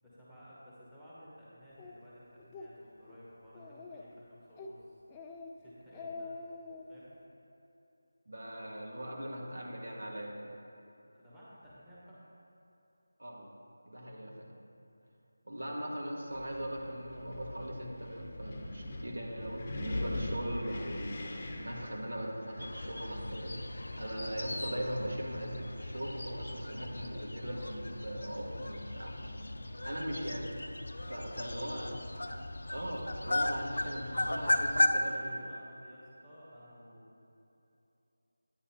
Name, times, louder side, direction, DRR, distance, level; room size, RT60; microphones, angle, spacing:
voice 1, 0.0-4.9 5.6-6.3 6.9-7.1 11.1-12.2 29.8-30.5 31.2-32.1 34.4-37.1, equal, 5° right, -11 dB, 1.4 m, -55 dB
Speech, 1.8-1.9 2.4-2.7 3.1-3.2 3.5-4.2 4.6-4.8 5.1-5.5 5.8-6.9, left 3 dB, 10° left, 0.3 m, -45 dB
voice 2, 8.3-10.5 13.2-13.5 13.9-14.5 15.5-29.4 29.8-30.5 31.1-31.9 32.7-35.4, equal, 85° right, -2 dB, 1.7 m, -40 dB
Wind, 16.3-23.6, left 1 dB, 30° left, 0.8 m, -42 dB
sound 1, 22.6-34.9, left 1 dB, 90° left, 0.6 m, -36 dB
10.0 x 9.6 x 2.9 m, 2.9 s
figure-of-eight pair, 175°, 0 cm